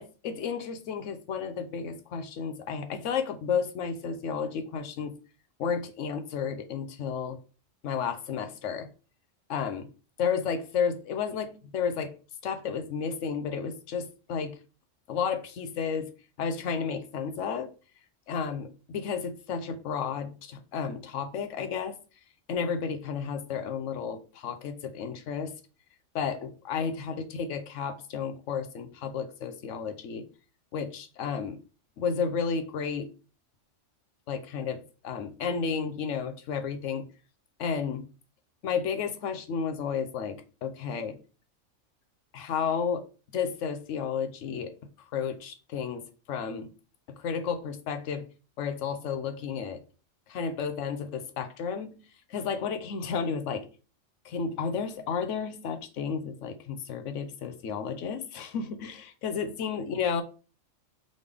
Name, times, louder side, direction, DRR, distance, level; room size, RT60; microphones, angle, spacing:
voice 1, 0.0-5.2 5.6-7.4 7.8-8.9 9.5-9.9 10.2-12.1 12.4-14.6 15.1-16.1 16.4-17.7 18.3-22.0 22.5-25.5 26.1-30.3 30.7-31.6 32.0-33.1 34.3-37.1 37.6-38.0 38.6-41.2 42.3-43.0 43.3-44.7 45.1-46.7 47.1-48.2 48.6-49.8 50.3-52.0 52.3-53.7 54.2-60.2, left 6 dB, 75° left, 1.0 m, -32 dB
3.9 x 3.3 x 3.3 m
omnidirectional pair, 1.3 m